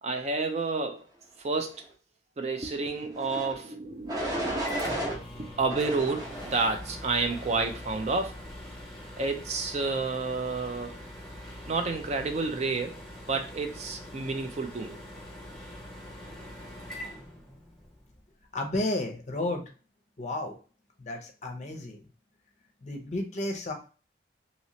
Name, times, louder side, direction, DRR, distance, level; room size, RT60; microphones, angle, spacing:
voice 1, 0.0-1.0 1.4-1.8 2.4-5.0 5.4-8.4 9.2-10.9 11.7-12.9 13.3-15.0, right 3 dB, 35° right, 0.4 m, -30 dB
sound 1, 3.1-3.5 4.1-5.2 5.7-6.7 7.3-7.7, right 1 dB, 20° right, 0.8 m, -34 dB
Microwave oven, 4.0-18.0, equal, ahead, 1.0 m, -43 dB
voice 2, 18.5-19.6 20.2-20.6 21.0-22.0 22.8-23.7, left 1 dB, 40° left, 0.6 m, -32 dB
3.0 x 2.9 x 2.8 m
head